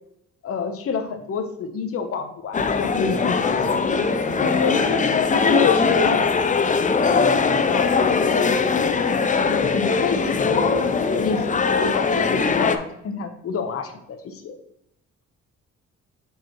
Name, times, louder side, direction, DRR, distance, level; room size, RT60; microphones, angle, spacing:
voice 1, 0.4-4.0 7.7-8.6 9.4-14.6, left 5 dB, 50° left, 6 dB, 0.9 m, -29 dB
sound 1, 2.5-12.8, left 5 dB, 25° left, 0.5 m, -21 dB
voice 2, 4.4-6.3, left 5 dB, 85° left, 4 dB, 1.0 m, -23 dB
7.3 x 4.8 x 3.0 m, 0.78 s
cardioid pair, 90°, 30 cm